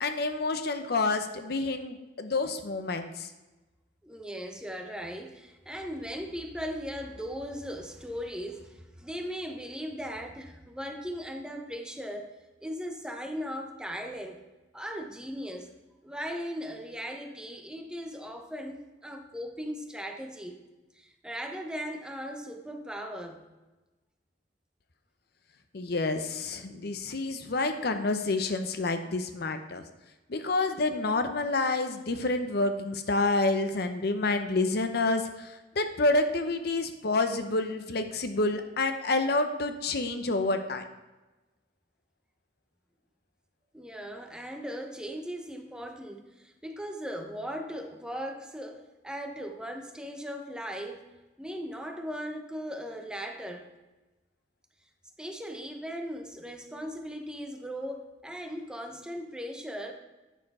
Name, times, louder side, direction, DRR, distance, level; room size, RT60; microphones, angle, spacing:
voice 1, 0.0-3.3 25.7-29.8 30.3-40.8, left 2 dB, 65° left, 8 dB, 0.7 m, -28 dB
voice 2, 4.0-12.3 12.6-14.4 14.7-15.7 16.0-20.6 20.9-23.4 43.7-51.1 51.4-53.6 55.2-59.9, equal, 5° right, 3 dB, 0.9 m, -38 dB
9.1 x 6.6 x 4.2 m, 1.1 s
head